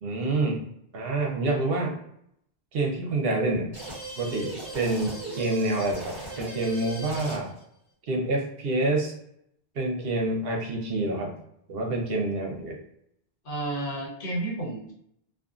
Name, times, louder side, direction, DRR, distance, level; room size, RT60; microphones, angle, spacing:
voice 1, 0.0-2.0 2.7-3.7 4.2-7.5 8.1-9.1 9.7-11.4 11.7-12.8, right 2 dB, 70° right, 1 dB, 0.9 m, -27 dB
sound 1, 3.7-7.6, right 2 dB, 25° right, 1.0 m, -38 dB
voice 2, 13.4-14.9, right 2 dB, 60° left, -4 dB, 1.1 m, -31 dB
2.5 x 2.4 x 2.4 m, 0.73 s
omnidirectional pair, 1.0 m